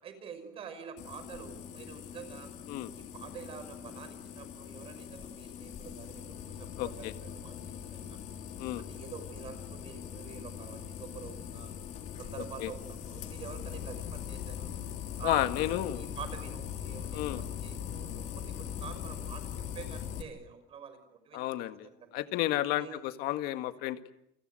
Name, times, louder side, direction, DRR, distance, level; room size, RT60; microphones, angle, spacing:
voice 1, 0.0-2.5 3.0-8.2 8.7-11.7 12.2-14.7 15.2-19.5 19.7-22.3 22.8-23.0, right 7 dB, 35° right, 10 dB, 5.8 m, -47 dB
sound 1, 1.0-20.2, left 8 dB, 50° left, 3.4 m, -41 dB
voice 2, 6.8-7.1 8.6-8.8 12.6-12.7 15.2-16.0 17.1-17.4 21.3-21.9 22.1-24.1, left 15 dB, 70° left, 9 dB, 1.9 m, -32 dB
29.5 x 25.5 x 7.9 m, 0.76 s
cardioid pair, 170°, 16 cm